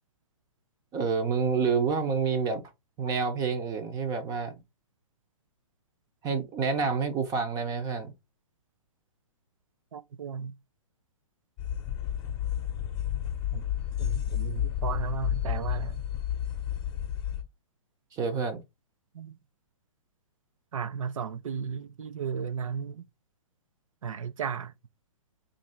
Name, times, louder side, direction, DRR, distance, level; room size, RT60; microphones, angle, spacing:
voice 1, 0.9-2.6 3.0-4.6 6.2-8.1 18.1-18.6, right 5 dB, 20° right, 0.6 m, -28 dB
voice 2, 9.9-10.5 13.5-13.6 14.0-16.0 19.2-19.4 20.7-23.0 24.0-24.7, right 7 dB, 80° right, 0.5 m, -34 dB
sound 1, 11.6-17.4, left 11 dB, 30° left, 0.8 m, -31 dB
2.9 x 2.6 x 4.2 m
hypercardioid pair, 135°, 17 cm